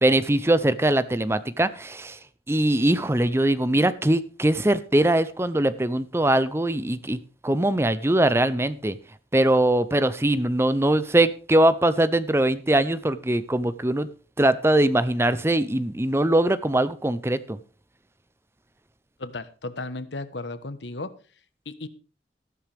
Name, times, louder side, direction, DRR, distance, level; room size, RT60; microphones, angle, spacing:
voice 1, 0.0-2.2 2.5-7.2 7.4-9.0 9.3-14.1 14.4-17.6, right 1 dB, 15° right, 14 dB, 0.6 m, -22 dB
voice 2, 19.2-21.1 21.6-21.9, left 2 dB, 85° left, 13 dB, 1.2 m, -34 dB
14.0 x 12.5 x 3.5 m, 0.38 s
head